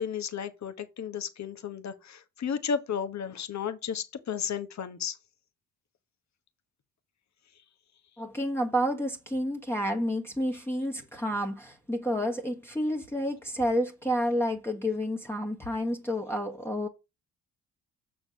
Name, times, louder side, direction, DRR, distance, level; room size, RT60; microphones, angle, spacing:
voice 1, 0.0-5.2, left 7 dB, 50° left, 1.3 m, -33 dB
voice 2, 8.2-16.9, equal, 5° left, 1.3 m, -30 dB
6.5 x 4.2 x 6.2 m
supercardioid pair, 55°, 36 cm